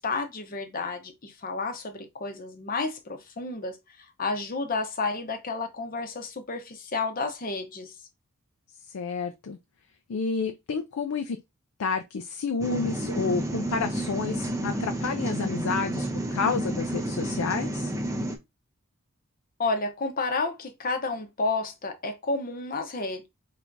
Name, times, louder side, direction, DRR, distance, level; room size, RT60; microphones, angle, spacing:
voice 1, 0.0-3.8 4.2-7.9 19.6-23.3, left 3 dB, 40° left, 0.7 m, -31 dB
voice 2, 8.9-9.6 10.1-11.4 11.8-17.9, left 5 dB, 75° left, 0.4 m, -30 dB
sound 1, 12.6-18.4, right 1 dB, 15° right, 0.5 m, -30 dB
4.6 x 3.3 x 2.6 m
head